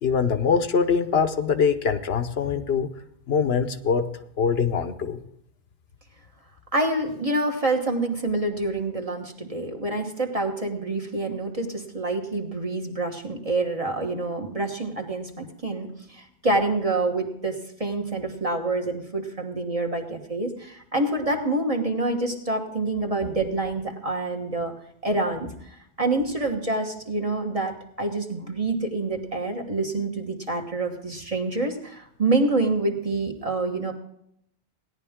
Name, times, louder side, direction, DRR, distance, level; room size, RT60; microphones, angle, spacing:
voice 1, 0.0-2.9 3.3-4.1 4.4-5.2, left 6 dB, 75° left, 9 dB, 1.1 m, -23 dB
voice 2, 6.7-24.7 25.0-33.9, right 2 dB, 35° right, 2 dB, 1.5 m, -27 dB
17.0 x 10.5 x 3.6 m, 0.75 s
omnidirectional pair, 1.1 m